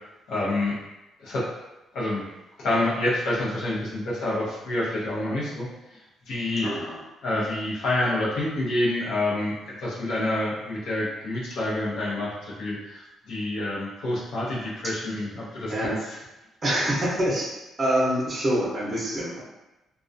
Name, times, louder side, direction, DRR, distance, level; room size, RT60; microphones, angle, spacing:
voice 1, 0.3-0.8 1.2-1.5 1.9-2.2 2.6-5.7 6.3-6.7 7.2-9.5 9.8-16.0, left 1 dB, 75° left, -6 dB, 0.7 m, -27 dB
voice 2, 6.6-7.0 14.8-15.2 15.7-16.0 16.6-19.4, right 1 dB, 30° right, -5 dB, 0.7 m, -26 dB
2.3 x 2.2 x 2.6 m, 1.0 s
cardioid pair, 90°, 0 cm